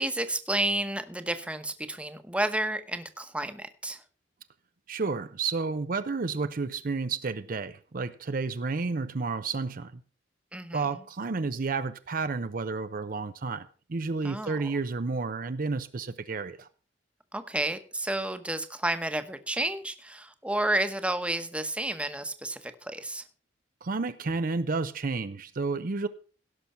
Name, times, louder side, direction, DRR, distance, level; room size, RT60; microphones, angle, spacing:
voice 1, 0.0-4.0 10.5-11.0 14.2-14.7 17.3-23.2, right 1 dB, 5° right, 1.0 m, -31 dB
voice 2, 4.9-9.9 10.7-16.7 23.8-26.1, right 4 dB, 50° right, 0.6 m, -31 dB
17.0 x 6.1 x 5.6 m
head